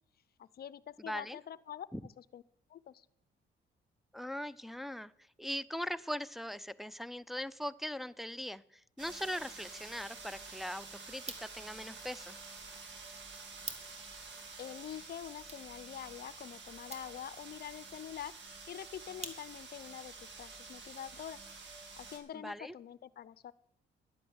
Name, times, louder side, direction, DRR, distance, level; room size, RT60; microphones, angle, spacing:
voice 1, 0.4-2.4 2.7-3.1 14.6-18.3 18.7-21.4 22.0-23.5, left 10 dB, 50° left, 19 dB, 0.6 m, -46 dB
voice 2, 1.0-1.4 1.9-2.0 4.1-5.1 5.4-12.4 22.3-22.7, equal, ahead, 12 dB, 0.5 m, -40 dB
sound 1, 9.0-22.2, right 4 dB, 65° right, 3.0 m, -49 dB
sound 2, 11.1-19.8, right 3 dB, 35° right, 1.8 m, -52 dB
11.0 x 8.4 x 8.0 m, 0.73 s
cardioid pair, 90°, 20 cm